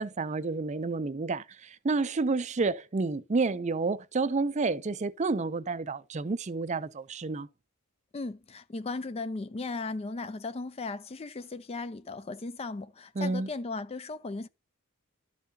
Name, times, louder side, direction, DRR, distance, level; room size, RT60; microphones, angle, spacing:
voice 1, 0.0-7.5 13.2-13.5, right 3 dB, 30° right, 0.5 m, -30 dB
voice 2, 8.1-14.5, left 3 dB, 25° left, 0.4 m, -36 dB
12.5 x 5.6 x 2.7 m
head